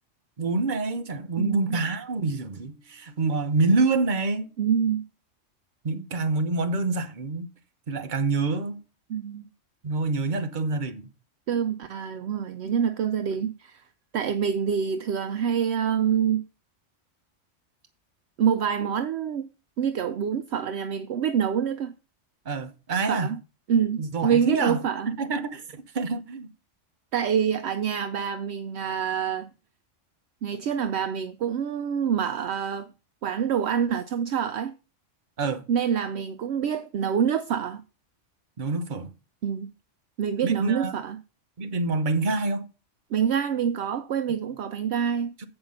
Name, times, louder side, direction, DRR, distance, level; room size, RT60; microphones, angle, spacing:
voice 1, 0.4-4.5 5.8-7.5 7.9-8.8 9.8-11.1 22.4-23.3 24.0-26.5 35.4-35.6 38.6-39.1 40.4-40.9 41.6-42.7 45.4-45.5, right 3 dB, 45° right, 1.0 m, -27 dB
voice 2, 1.4-1.8 4.6-5.0 9.1-9.5 11.5-13.8 14.1-16.4 18.4-19.5 19.8-21.9 23.1-23.4 23.7-25.1 27.1-29.5 30.4-32.9 33.2-34.7 35.7-37.8 39.4-39.7 40.2-41.2 43.1-45.3, right 8 dB, 70° right, 0.8 m, -26 dB
7.9 x 5.4 x 5.4 m
omnidirectional pair, 1.3 m